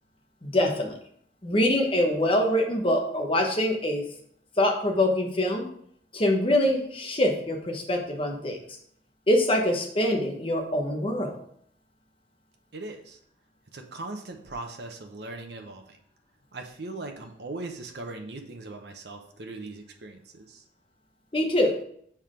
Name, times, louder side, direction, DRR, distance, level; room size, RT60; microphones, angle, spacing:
voice 1, 0.4-0.9 1.4-4.0 4.6-5.7 6.1-8.6 9.3-11.4 21.3-21.7, left 1 dB, 30° left, 2 dB, 1.1 m, -24 dB
voice 2, 12.7-13.2 13.7-16.0 16.5-20.6, right 2 dB, 65° right, 4 dB, 0.8 m, -39 dB
5.7 x 4.4 x 5.0 m, 0.65 s
head